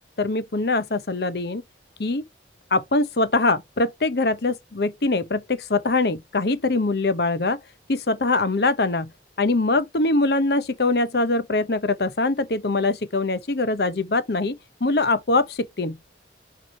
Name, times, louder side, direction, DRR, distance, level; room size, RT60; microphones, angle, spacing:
voice 1, 0.2-1.6 2.0-2.2 2.7-7.6 7.9-9.1 9.4-16.0, left 2 dB, 60° left, 0.8 m, -23 dB
4.7 x 4.6 x 4.6 m
head